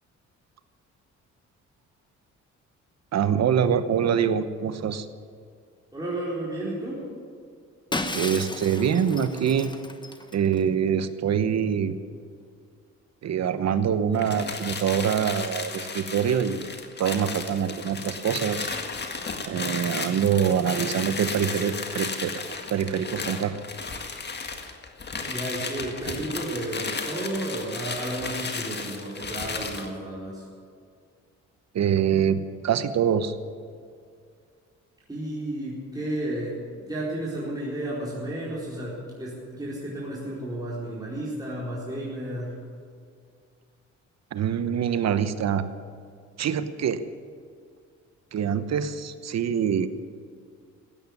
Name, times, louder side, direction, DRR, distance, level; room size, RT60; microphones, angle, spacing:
voice 1, 3.1-5.1 8.1-9.7 10.3-12.0 13.2-16.7 17.0-18.7 19.5-23.5 31.7-33.3 44.3-45.7 46.4-47.0 48.3-49.9, right 8 dB, 60° right, 11 dB, 1.1 m, -25 dB
voice 2, 5.9-7.0 25.2-30.5 35.1-42.6, right 1 dB, 10° right, -7 dB, 4.5 m, -32 dB
Shatter, 7.9-10.6, left 2 dB, 15° left, 1.3 m, -34 dB
sound 1, 14.1-29.9, left 4 dB, 35° left, 1.8 m, -34 dB
16.0 x 9.1 x 9.6 m, 2.2 s
cardioid pair, 90°, 30 cm